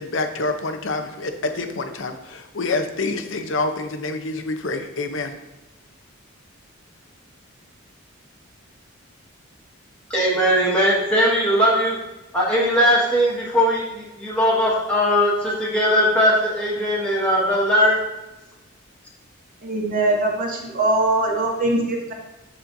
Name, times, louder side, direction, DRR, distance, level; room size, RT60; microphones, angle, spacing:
voice 1, 0.0-5.3, left 3 dB, 65° left, 6 dB, 0.7 m, -27 dB
voice 2, 10.1-12.0 12.3-18.0, equal, 5° left, -7 dB, 1.5 m, -19 dB
voice 3, 19.6-22.1, right 2 dB, 40° right, 0 dB, 1.2 m, -22 dB
12.5 x 4.2 x 2.6 m, 1.0 s
head